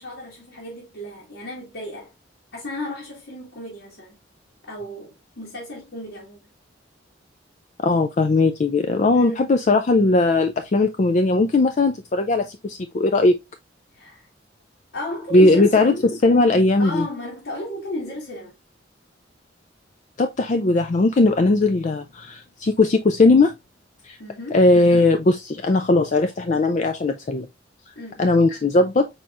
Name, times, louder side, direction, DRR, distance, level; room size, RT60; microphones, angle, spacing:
voice 1, 0.0-2.1 2.5-4.2 4.7-6.4 9.1-9.4 13.9-14.3 14.9-15.9 16.8-18.5 24.2-24.6 28.0-28.3, left 1 dB, 70° left, 1.8 m, -33 dB
voice 2, 7.8-13.3 15.3-17.1 20.2-23.5 24.0-24.2 24.5-27.5 28.2-29.1, left 2 dB, 40° left, 0.4 m, -18 dB
4.7 x 4.3 x 2.5 m
head